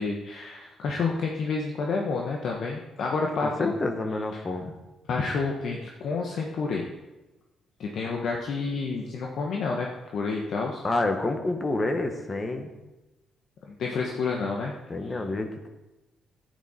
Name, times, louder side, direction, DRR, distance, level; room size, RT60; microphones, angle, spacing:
voice 1, 0.0-3.7 5.1-6.9 7.8-9.9 10.1-10.8 13.7-14.7, left 4 dB, 65° left, 0 dB, 1.2 m, -29 dB
voice 2, 3.4-4.7 10.8-12.7 14.9-15.7, left 2 dB, 30° left, 6 dB, 1.3 m, -28 dB
10.5 x 9.4 x 4.3 m, 1.0 s
cardioid pair, 90°, 0 cm